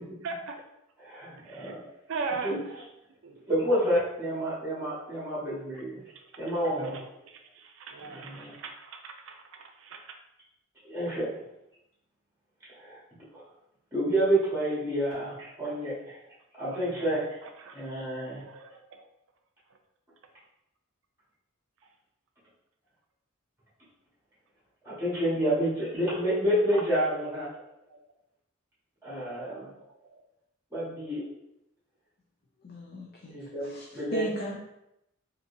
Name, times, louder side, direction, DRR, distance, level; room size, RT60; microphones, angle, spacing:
voice 1, 0.2-0.6 1.4-1.7 2.1-2.5 3.2-3.4 6.7-7.0 7.6-9.4 9.8-10.1 16.7-17.1 17.6-17.9 18.4-18.7 27.9-28.0 30.1-30.2, right 4 dB, 65° right, 4 dB, 0.5 m, -38 dB
voice 2, 1.0-1.8 2.4-2.6 3.5-6.0 6.4-7.0 8.1-8.5 10.8-11.3 12.7-13.0 13.3-13.4 13.9-16.1 16.5-17.4 17.7-18.4 24.8-27.5 29.0-29.7 30.7-31.2 33.3-34.3, right 1 dB, 10° right, -8 dB, 1.4 m, -29 dB
voice 3, 32.6-34.6, left 1 dB, 45° left, -2 dB, 0.4 m, -36 dB
3.9 x 2.7 x 2.6 m, 0.83 s
head